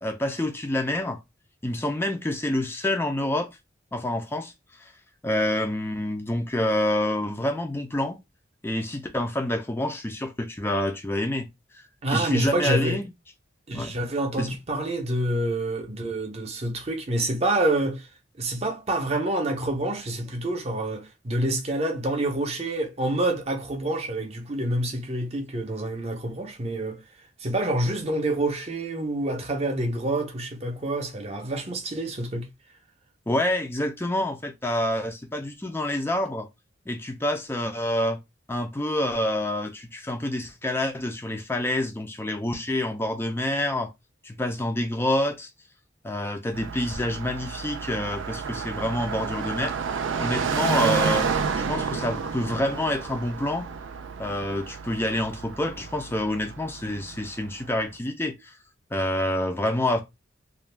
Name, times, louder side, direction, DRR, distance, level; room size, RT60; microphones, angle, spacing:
voice 1, 0.0-1.2 1.6-3.5 3.9-4.5 4.8-4.9 5.2-8.2 8.6-11.5 11.7-13.1 13.7-13.9 14.4-14.5 33.3-36.5 36.9-38.2 38.5-43.9 44.2-45.5 46.0-49.8 50.2-51.3 51.6-53.7 54.2-58.6 58.9-60.0, left 1 dB, 10° left, 0.4 m, -27 dB
voice 2, 12.0-13.0 13.7-18.1 18.4-27.0 27.4-32.5, right 1 dB, 35° right, 0.7 m, -27 dB
Car passing by, 46.5-57.6, right 5 dB, 80° right, 0.4 m, -30 dB
2.4 x 2.2 x 3.2 m
head